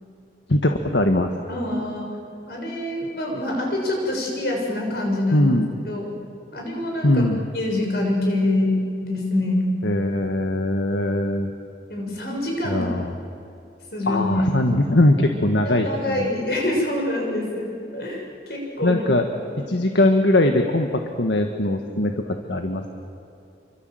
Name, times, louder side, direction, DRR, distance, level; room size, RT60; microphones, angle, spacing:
voice 1, 0.5-1.3 5.3-5.7 7.0-7.4 9.8-11.5 12.6-13.1 14.1-16.3 18.8-19.2 19.7-22.8, left 1 dB, 75° left, 4 dB, 1.6 m, -21 dB
voice 2, 1.5-2.1 2.5-5.5 5.9-6.1 6.5-7.2 7.5-9.7 11.9-12.9 13.9-14.5 15.3-19.0 19.5-19.6, left 1 dB, 60° left, 0 dB, 6.9 m, -25 dB
29.5 x 24.5 x 7.8 m, 2.7 s
head